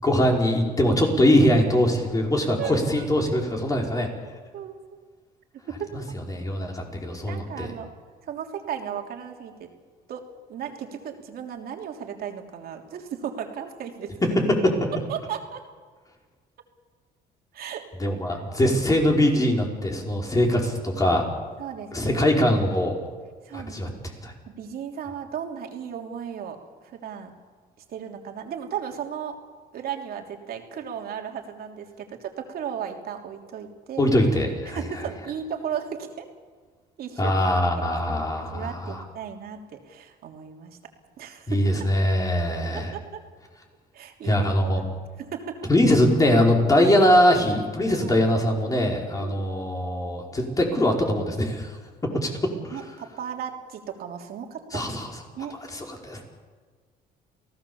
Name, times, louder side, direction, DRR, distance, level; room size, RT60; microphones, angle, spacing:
voice 1, 0.0-4.1 5.9-6.0 6.3-7.7 14.6-14.9 18.0-21.3 21.9-22.9 23.5-23.9 24.2-24.3 34.0-34.8 37.2-39.0 41.5-42.9 44.2-44.8 45.7-51.8 52.0-52.7 54.7-55.1 55.7-56.2, left 1 dB, 20° left, 1 dB, 5.2 m, -22 dB
voice 2, 2.6-3.1 3.9-4.1 4.5-5.0 5.6-5.9 7.3-7.9 8.2-9.7 10.1-14.2 15.1-15.6 17.5-17.8 18.3-18.4 21.6-22.3 23.4-23.8 24.5-27.3 27.9-29.4 29.7-34.1 34.7-36.3 37.0-37.3 38.5-40.8 41.2-41.9 42.7-43.2 43.9-44.8 45.2-45.7 46.8-46.9 48.0-48.2 49.2-49.4 52.1-52.2 52.7-54.9 55.4-55.6, right 8 dB, 65° right, 3 dB, 3.3 m, -35 dB
28.5 x 18.0 x 7.2 m, 1.5 s
cardioid pair, 110°, 17 cm